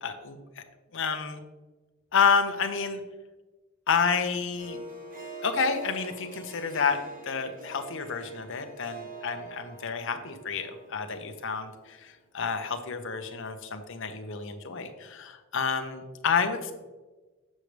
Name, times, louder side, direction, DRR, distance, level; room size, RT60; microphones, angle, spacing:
voice 1, 0.0-0.6 0.9-1.4 2.1-3.0 3.9-4.8 5.4-16.7, left 5 dB, 60° left, 7 dB, 0.8 m, -29 dB
Harp, 4.6-12.1, right 3 dB, 40° right, 1.1 m, -45 dB
7.4 x 6.6 x 3.3 m, 1.2 s
head